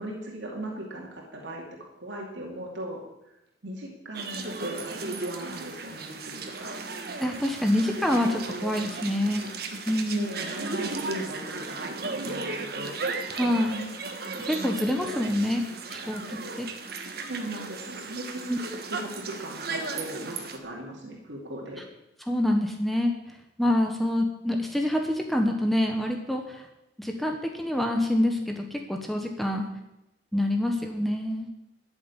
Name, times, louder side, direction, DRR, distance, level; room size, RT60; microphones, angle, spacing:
voice 1, 0.0-1.6 2.0-3.3 3.6-6.8 10.1-13.0 17.3-21.9, right 1 dB, 75° right, -1 dB, 2.5 m, -38 dB
sound 1, 4.1-20.6, right 3 dB, 55° right, 1.6 m, -35 dB
voice 2, 7.2-9.5 9.9-10.3 13.3-13.9 14.4-15.6 15.9-16.7 18.5-18.6 22.3-23.1 23.6-26.6 27.0-29.7 30.3-31.5, left 1 dB, ahead, 2 dB, 1.2 m, -26 dB
12.5 x 7.1 x 9.8 m, 0.90 s
head